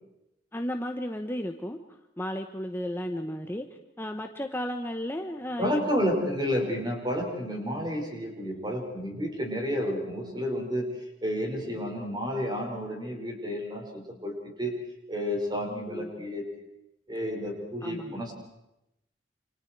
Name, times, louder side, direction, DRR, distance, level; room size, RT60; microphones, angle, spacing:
voice 1, 0.5-1.8 2.2-3.7 4.0-5.8 11.7-11.8 15.9-16.1 17.8-18.3, equal, 15° left, 5 dB, 1.0 m, -34 dB
voice 2, 5.6-10.9 11.2-14.7 15.1-16.4 17.1-18.5, equal, 25° right, 0 dB, 5.8 m, -31 dB
29.0 x 27.0 x 4.8 m, 0.89 s
head